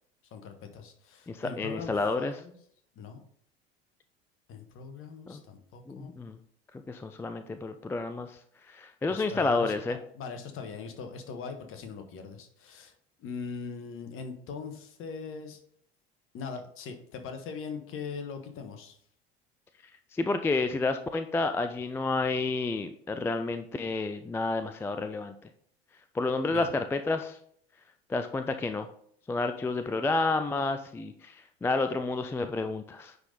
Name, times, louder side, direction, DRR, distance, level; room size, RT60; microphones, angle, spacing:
voice 1, 0.3-2.6 2.9-3.2 4.5-6.1 9.1-12.9 13.2-15.6 16.3-19.0 26.5-26.7, left 5 dB, 40° left, 6 dB, 1.3 m, -41 dB
voice 2, 1.3-2.4 5.3-5.4 5.9-6.4 6.7-8.4 8.7-10.0 20.1-25.3 26.1-27.4 28.1-28.9 29.3-33.2, left 3 dB, 10° left, 9 dB, 0.3 m, -30 dB
9.6 x 4.1 x 3.9 m, 0.65 s
figure-of-eight pair, 70°, 32 cm